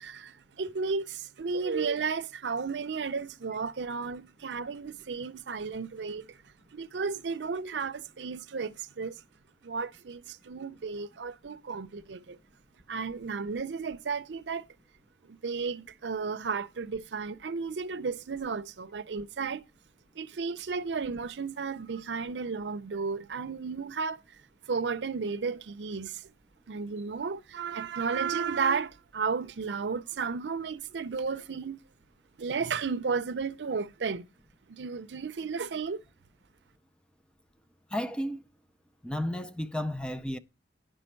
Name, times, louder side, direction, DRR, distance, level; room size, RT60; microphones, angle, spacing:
voice 1, 0.0-6.4 6.7-9.2 9.6-12.4 12.9-14.7 15.3-19.6 20.2-24.2 24.7-26.3 26.7-31.8 32.4-34.3 34.7-36.0, right 5 dB, 85° right, 0.5 m, -33 dB
voice 2, 37.9-38.5 39.0-40.4, left 1 dB, 5° left, 0.5 m, -33 dB
10.0 x 6.3 x 4.4 m
head